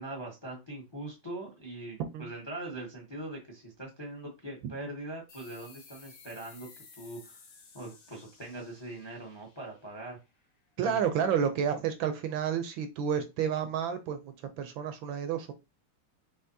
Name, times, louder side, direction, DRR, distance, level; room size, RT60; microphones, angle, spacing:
voice 1, 0.0-6.7 7.0-7.4 7.7-10.2 10.8-11.0, right 1 dB, 20° left, 0 dB, 0.6 m, -42 dB
sound 1, 5.3-10.4, left 5 dB, 65° left, 2.0 m, -55 dB
voice 2, 10.8-15.5, right 8 dB, 75° right, 9 dB, 1.2 m, -30 dB
5.6 x 3.1 x 2.7 m, 0.26 s
omnidirectional pair, 2.4 m